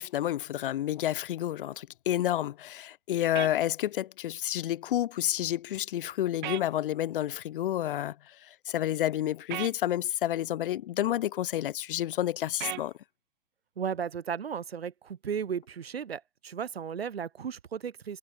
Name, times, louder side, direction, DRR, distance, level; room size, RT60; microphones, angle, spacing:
voice 1, 0.0-12.9, left 12 dB, 60° left, 1.5 m, -30 dB
sound 1, 3.4-3.5 6.4-6.7 9.5-9.7 12.6-12.9, right 15 dB, 55° right, 0.7 m, -35 dB
voice 2, 13.8-18.2, right 7 dB, 90° right, 2.7 m, -35 dB
hypercardioid pair, 140°, 30 cm